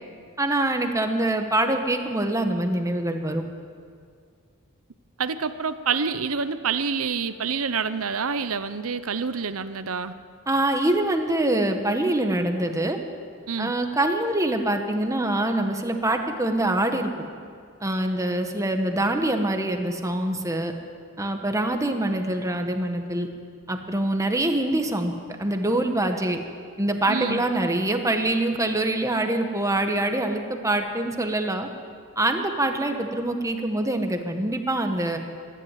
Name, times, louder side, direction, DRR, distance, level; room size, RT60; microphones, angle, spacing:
voice 1, 0.4-3.4 10.5-13.0 13.6-17.3 17.8-20.7 21.2-23.3 23.7-25.1 25.4-26.4 26.8-31.7 32.2-35.2, right 1 dB, 15° right, 5 dB, 1.4 m, -24 dB
voice 2, 5.2-10.1 13.5-13.7 27.1-27.4, right 5 dB, 85° right, 11 dB, 0.9 m, -27 dB
25.0 x 11.5 x 9.3 m, 2.2 s
head